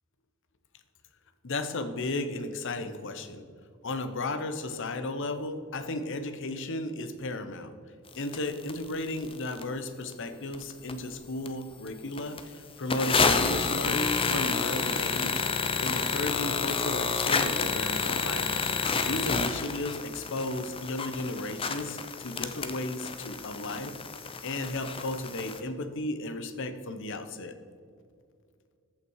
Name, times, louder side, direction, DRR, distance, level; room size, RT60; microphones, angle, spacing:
voice 1, 1.4-3.4 3.8-7.7 8.1-15.4 15.8-18.6 19.0-23.9 24.4-27.5, left 2 dB, 60° left, 9 dB, 0.8 m, -34 dB
sound 1, 8.3-8.4 8.7-8.8 9.2-9.6 10.1-10.2 10.5-11.1 11.5-11.6 11.9-12.0 12.2-12.4 12.9-25.6, left 5 dB, 25° left, 0.6 m, -29 dB
14.0 x 5.8 x 4.7 m, 2.2 s
head